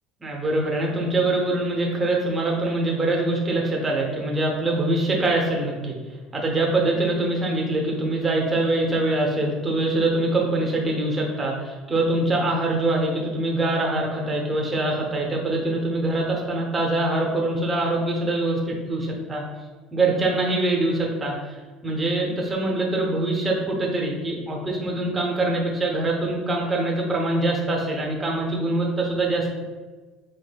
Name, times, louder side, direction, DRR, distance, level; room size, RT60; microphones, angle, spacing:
voice 1, 0.2-6.0 6.3-19.4 19.9-21.6 21.8-29.6, right 2 dB, 15° right, -1 dB, 0.7 m, -24 dB
5.2 x 3.5 x 2.2 m, 1.3 s
cardioid pair, 170°, 0 cm